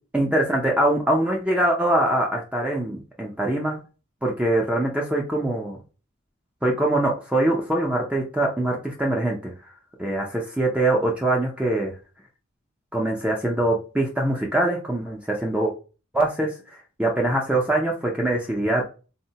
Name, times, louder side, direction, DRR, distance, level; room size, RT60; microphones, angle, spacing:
voice 1, 0.1-3.8 4.2-5.8 6.6-9.5 10.0-11.9 12.9-15.7 16.1-16.5 17.0-18.8, right 1 dB, 5° right, -1 dB, 0.4 m, -23 dB
3.7 x 2.1 x 2.7 m, 0.34 s
head